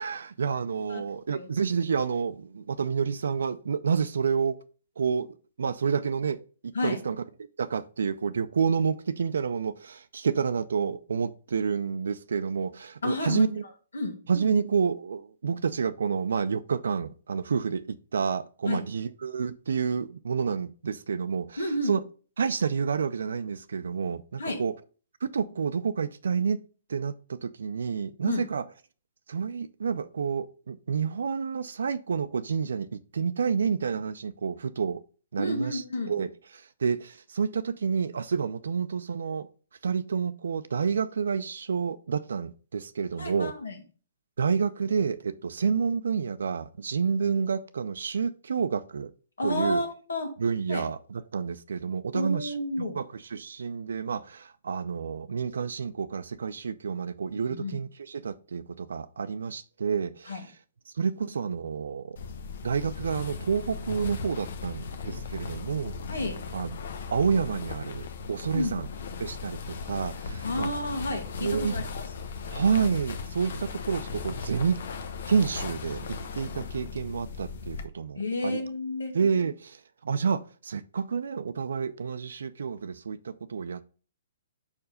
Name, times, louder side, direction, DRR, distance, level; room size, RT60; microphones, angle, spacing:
voice 1, 0.0-4.6 5.0-6.4 6.6-7.2 7.6-13.6 14.3-21.6 21.8-22.0 22.4-24.7 25.2-26.6 26.9-28.6 29.3-35.0 35.3-39.5 39.8-43.5 44.4-49.1 49.4-49.8 50.4-60.4 61.0-62.2 62.6-65.9 66.5-66.8 67.1-68.9 69.2-70.7 71.4-71.8 72.5-74.8 75.3-78.6 79.1-79.8 80.0-83.8, right 6 dB, 75° right, 0.4 m, -29 dB
voice 2, 13.0-13.5 13.9-14.1 18.7-18.8 21.6-21.9 24.4-24.6 28.2-28.5 35.4-36.1 43.2-43.8 49.4-50.3 50.7-50.8 52.1-53.0 57.5-57.8 60.3-60.4 66.1-66.4 68.5-68.7 70.4-72.0 78.2-79.1, left 2 dB, 85° left, 2.1 m, -30 dB
sound 1, 62.2-77.8, left 4 dB, 65° left, 0.8 m, -37 dB
5.2 x 4.8 x 5.0 m
hypercardioid pair, 135°, 0 cm